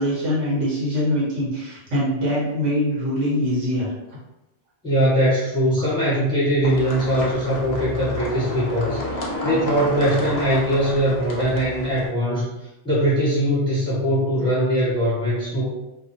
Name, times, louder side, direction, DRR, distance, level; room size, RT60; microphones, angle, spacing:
voice 1, 0.0-3.9 5.8-5.9 7.1-7.2 14.3-14.5, equal, 65° right, -7 dB, 1.0 m, -23 dB
voice 2, 4.8-12.5 12.8-15.7, equal, 5° left, -9 dB, 1.0 m, -21 dB
sound 1, 6.6-12.1, left 2 dB, 60° left, 0.7 m, -31 dB
2.2 x 2.1 x 2.6 m, 0.95 s
omnidirectional pair, 1.3 m